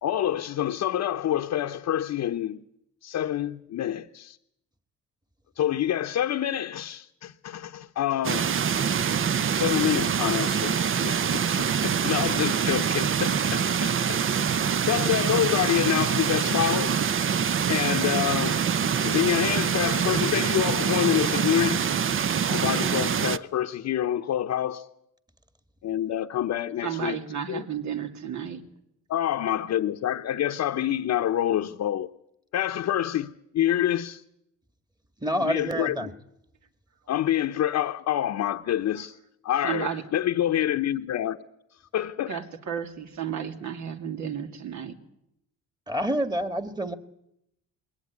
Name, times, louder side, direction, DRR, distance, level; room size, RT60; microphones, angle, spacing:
voice 1, 0.0-2.6 3.0-4.4 5.6-8.5 9.5-14.3 14.9-17.0 17.7-18.6 19.0-21.9 22.5-24.9 25.8-27.2 27.5-27.6 29.1-32.1 32.5-34.2 35.4-36.1 37.1-39.2 39.4-41.4 41.9-42.4, left 11 dB, 65° left, 0.9 m, -27 dB
sound 1, 8.2-23.4, right 7 dB, 45° right, 0.8 m, -25 dB
voice 2, 26.8-28.6 39.6-40.0 42.3-44.9, right 8 dB, 70° right, 2.6 m, -32 dB
voice 3, 35.2-36.1 45.9-46.9, equal, 15° right, 1.9 m, -27 dB
21.0 x 18.0 x 9.6 m
cardioid pair, 90°, 30 cm